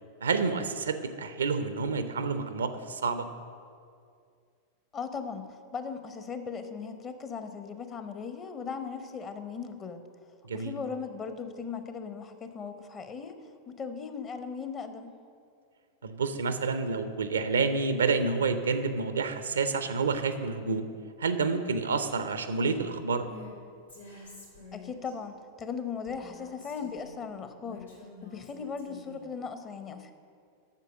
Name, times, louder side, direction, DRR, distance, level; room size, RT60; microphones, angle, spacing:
voice 1, 0.2-3.3 10.4-10.7 16.0-20.9 21.2-23.3, right 4 dB, 70° right, 10 dB, 0.6 m, -29 dB
voice 2, 4.9-10.0 10.5-13.4 13.7-15.1 24.7-27.9 28.2-30.1, left 5 dB, 25° left, 8 dB, 0.8 m, -38 dB
Female speech woman speaking, 23.2-23.5 23.9-25.1 26.0-27.2 27.6-29.3, left 3 dB, 90° left, 2.5 m, -49 dB
8.2 x 6.8 x 6.4 m, 2.3 s
figure-of-eight pair, 90°, 0 cm